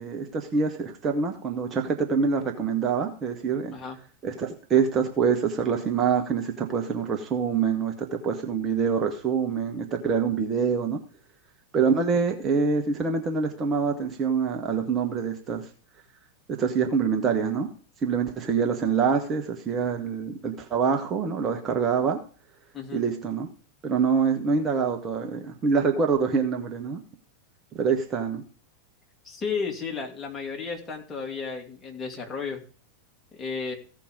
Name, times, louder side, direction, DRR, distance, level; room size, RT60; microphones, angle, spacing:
voice 1, 0.0-3.7 4.2-11.0 11.7-15.7 16.6-17.7 18.0-22.2 22.9-23.5 23.8-27.0 27.7-28.4, right 5 dB, 25° right, 3 dB, 1.4 m, -25 dB
voice 2, 29.2-32.6 33.3-33.8, left 5 dB, 20° left, 0 dB, 2.8 m, -33 dB
16.0 x 5.3 x 5.2 m, 0.40 s
figure-of-eight pair, 90°, 0 cm